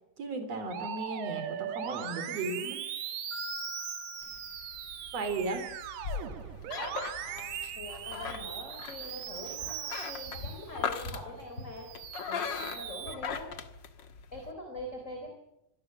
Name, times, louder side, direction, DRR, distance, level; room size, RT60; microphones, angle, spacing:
voice 1, 0.2-2.8 5.1-5.7, right 3 dB, 40° right, 8 dB, 4.4 m, -35 dB
Musical instrument, 0.7-11.1 11.6-13.1, right 10 dB, 85° right, 3.8 m, -40 dB
Marimba xylophone, 3.3-5.5, left 11 dB, 40° left, 6.3 m, -45 dB
sound 1, 4.2-14.5, left 6 dB, 75° left, 1.0 m, -40 dB
voice 2, 7.2-11.9 12.3-13.6 14.3-15.3, left 1 dB, 20° left, 3 dB, 3.6 m, -42 dB
26.0 x 17.5 x 7.7 m, 0.84 s
omnidirectional pair, 4.5 m